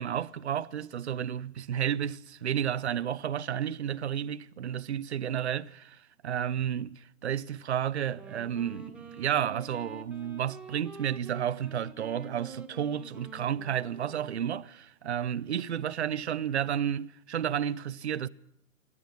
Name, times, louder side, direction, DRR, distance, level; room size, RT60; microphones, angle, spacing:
voice 1, 0.0-6.0 6.2-18.3, right 9 dB, 50° right, 0.9 m, -31 dB
Wind instrument woodwind instrument, 8.1-14.6, right 3 dB, 5° right, 1.2 m, -48 dB
28.0 x 12.5 x 8.9 m
figure-of-eight pair, 135°, 43 cm